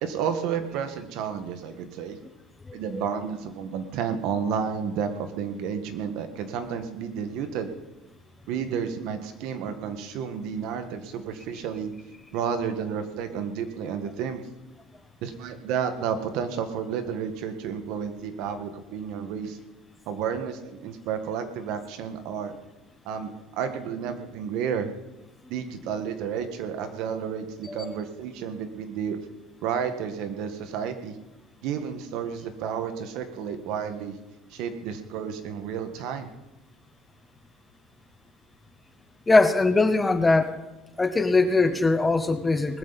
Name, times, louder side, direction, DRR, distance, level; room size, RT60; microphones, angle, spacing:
voice 1, 0.0-2.2 2.7-7.7 8.5-11.9 12.3-14.5 15.2-19.6 20.1-22.5 23.0-24.9 25.5-29.2 29.6-31.2 31.6-34.2 34.5-36.3, right 7 dB, 60° right, 8 dB, 1.6 m, -31 dB
voice 2, 2.7-3.0 27.6-28.0 39.3-40.6 41.0-42.8, left 3 dB, 10° left, 10 dB, 0.8 m, -22 dB
20.0 x 13.5 x 4.2 m, 1.0 s
cardioid pair, 155°, 0 cm